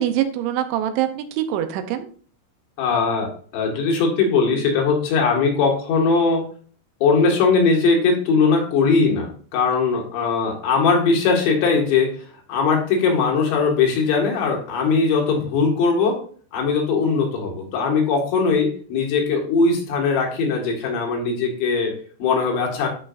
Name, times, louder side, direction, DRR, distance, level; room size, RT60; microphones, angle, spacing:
voice 1, 0.0-2.1, right 11 dB, 85° right, 9 dB, 3.3 m, -24 dB
voice 2, 2.8-6.4 7.0-12.2 12.5-16.2 16.5-22.9, left 4 dB, 75° left, 0 dB, 4.2 m, -20 dB
12.5 x 5.7 x 2.6 m, 0.44 s
omnidirectional pair, 5.3 m